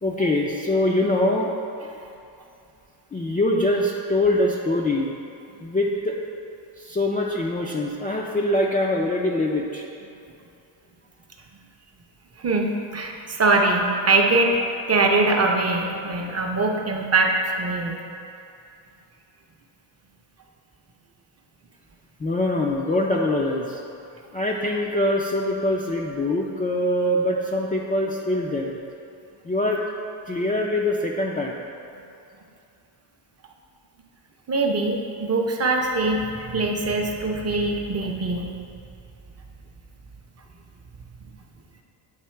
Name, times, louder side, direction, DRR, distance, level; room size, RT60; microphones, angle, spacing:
voice 1, 0.0-1.5 2.0-2.1 3.1-5.1 5.6-6.2 6.8-9.9 22.2-23.8 24.3-28.8 29.4-29.8 30.3-31.5, left 1 dB, 20° left, -3 dB, 0.4 m, -23 dB
voice 2, 12.4-14.6 14.9-17.3 17.6-17.9 34.5-38.5, right 3 dB, 30° right, 1 dB, 0.7 m, -22 dB
8.0 x 2.8 x 4.4 m, 2.6 s
cardioid pair, 90°, 48 cm